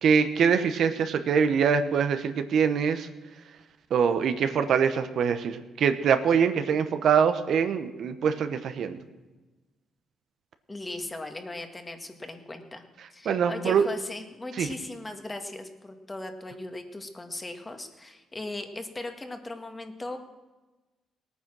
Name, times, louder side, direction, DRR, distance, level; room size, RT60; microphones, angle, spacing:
voice 1, 0.0-3.1 3.9-9.0 13.2-13.8 14.6-14.7, right 6 dB, 65° right, 9 dB, 1.0 m, -24 dB
voice 2, 10.7-20.2, left 2 dB, 20° left, 6 dB, 1.7 m, -38 dB
18.0 x 9.4 x 6.2 m, 1.2 s
cardioid pair, 90°, 0 cm